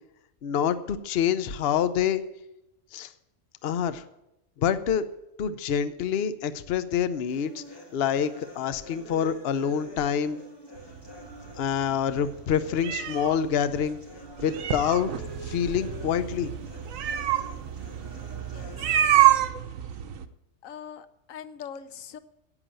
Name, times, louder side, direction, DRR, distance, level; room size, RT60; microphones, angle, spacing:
voice 1, 0.4-2.2 2.9-3.1 3.6-4.0 4.6-5.1 5.4-7.6 7.9-10.4 11.6-14.0 14.4-15.1 15.4-16.5, left 8 dB, 55° left, 13 dB, 0.9 m, -26 dB
sound 1, 7.3-19.3, equal, 20° left, 1.8 m, -46 dB
sound 2, 10.8-20.2, right 12 dB, 80° right, 1.2 m, -27 dB
voice 2, 18.3-18.8 19.2-19.5 20.6-22.2, left 8 dB, 80° left, 14 dB, 1.1 m, -42 dB
11.0 x 8.3 x 8.9 m, 0.86 s
omnidirectional pair, 1.4 m